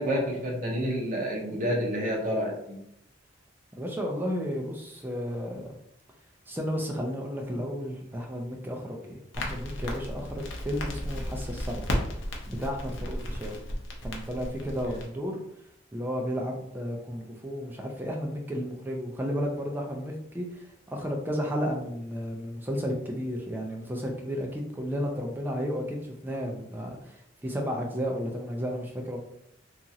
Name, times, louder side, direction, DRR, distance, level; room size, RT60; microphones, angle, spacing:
voice 1, 0.0-2.8 14.9-15.0, equal, 40° right, -2 dB, 0.7 m, -29 dB
voice 2, 3.8-5.7 6.5-11.9 12.5-13.6 14.0-15.4 15.9-29.2, equal, 10° right, 0 dB, 0.3 m, -33 dB
Crackle, 9.3-15.1, left 1 dB, 70° left, 0.6 m, -34 dB
2.9 x 2.4 x 2.7 m, 0.76 s
head